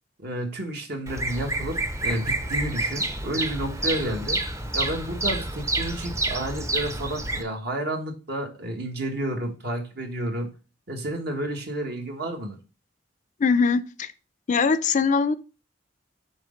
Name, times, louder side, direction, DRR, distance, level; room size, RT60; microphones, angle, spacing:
voice 1, 0.2-1.8 2.0-4.4 4.7-10.5 10.9-12.6, right 1 dB, 60° right, 1.6 m, -31 dB
Bird vocalization bird call bird song, 1.1-7.4, right 2 dB, 15° right, 0.6 m, -28 dB
voice 2, 13.4-14.1 14.5-15.3, left 5 dB, 40° left, 0.4 m, -21 dB
6.4 x 4.2 x 5.1 m
head